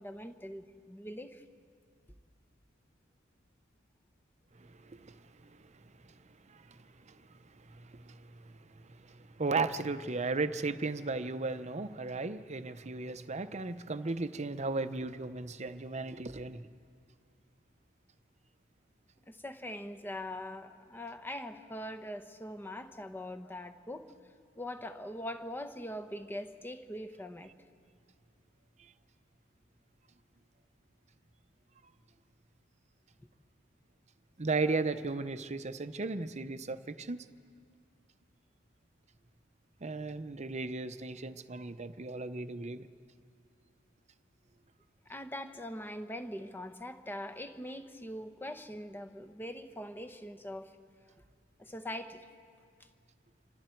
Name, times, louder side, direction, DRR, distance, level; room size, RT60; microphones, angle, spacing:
voice 1, 0.0-1.4 19.3-24.1 24.6-27.5 45.1-50.8 51.6-52.2, left 1 dB, 10° left, 0.9 m, -42 dB
voice 2, 4.6-5.8 6.5-7.2 7.6-16.7 34.4-37.3 39.8-42.9, right 3 dB, 35° right, 0.7 m, -36 dB
28.0 x 25.0 x 4.5 m
head